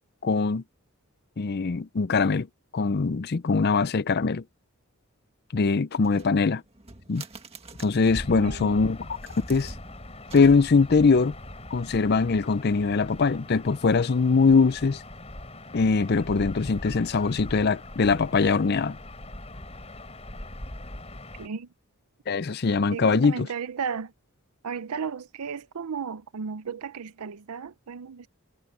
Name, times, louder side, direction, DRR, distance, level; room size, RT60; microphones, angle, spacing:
voice 1, 0.2-0.6 1.4-2.5 2.7-4.4 5.5-6.6 7.1-7.2 7.8-9.0 9.4-9.7 10.3-11.3 11.7-15.0 15.7-19.0 22.3-23.4, left 4 dB, 45° left, 0.5 m, -22 dB
sound 1, 6.0-8.4 9.0-11.0, right 3 dB, 25° right, 1.8 m, -46 dB
Gull seagull / Ocean, 8.1-21.5, left 1 dB, 30° left, 4.3 m, -41 dB
voice 2, 8.4-8.8 21.4-21.7 22.9-24.1 24.6-28.3, right 6 dB, 90° right, 0.6 m, -34 dB
head